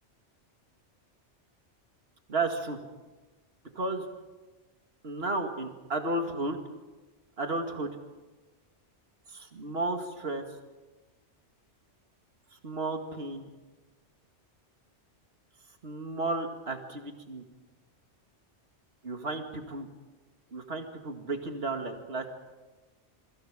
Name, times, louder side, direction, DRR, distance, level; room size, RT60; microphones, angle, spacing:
voice 1, 2.3-2.8 3.8-4.1 5.0-6.6 7.4-7.9 9.3-10.5 12.5-13.5 15.8-17.4 19.0-19.9 20.5-22.2, right 2 dB, 60° right, 4 dB, 2.4 m, -33 dB
27.0 x 24.5 x 5.1 m, 1.2 s
omnidirectional pair, 1.2 m